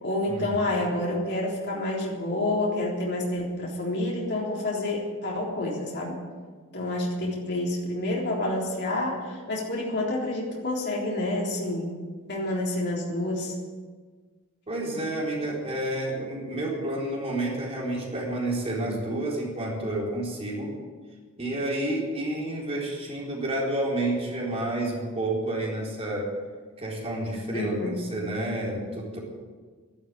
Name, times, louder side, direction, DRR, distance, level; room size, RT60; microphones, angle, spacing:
voice 1, 0.0-6.2 6.7-11.9 12.3-13.5 27.5-28.0, left 1 dB, 50° left, -3 dB, 3.7 m, -28 dB
voice 2, 14.7-20.7 21.4-26.3 26.8-29.2, right 1 dB, 30° right, -3 dB, 4.3 m, -30 dB
12.5 x 12.0 x 8.9 m, 1.5 s
head